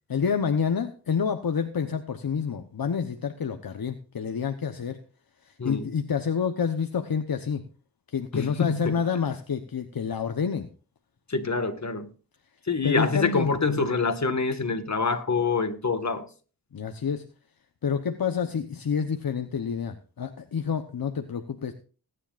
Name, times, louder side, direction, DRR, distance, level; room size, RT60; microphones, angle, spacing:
voice 1, 0.1-5.0 5.6-7.6 8.1-10.7 12.8-13.5 16.7-17.2 17.8-21.7, left 6 dB, 60° left, 1.0 m, -28 dB
voice 2, 5.6-5.9 8.3-9.0 11.3-12.1 12.7-16.3, left 4 dB, 45° left, 1.8 m, -26 dB
20.0 x 10.0 x 2.5 m
cardioid pair, 50°, 40 cm